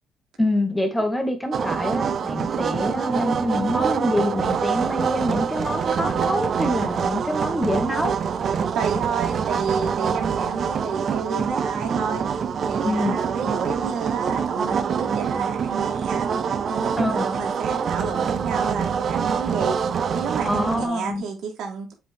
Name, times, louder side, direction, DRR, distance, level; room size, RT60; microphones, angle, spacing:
voice 1, 0.4-8.2 12.8-13.2 17.0-17.3 20.4-21.2, left 1 dB, 10° left, 2.0 m, -25 dB
sound 1, 1.5-20.9, right 6 dB, 55° right, 0.6 m, -25 dB
voice 2, 8.7-12.2 12.7-16.3 16.6-19.8 20.1-21.9, right 6 dB, 75° right, 2.0 m, -30 dB
7.8 x 4.3 x 3.6 m
cardioid pair, 90°, 0 cm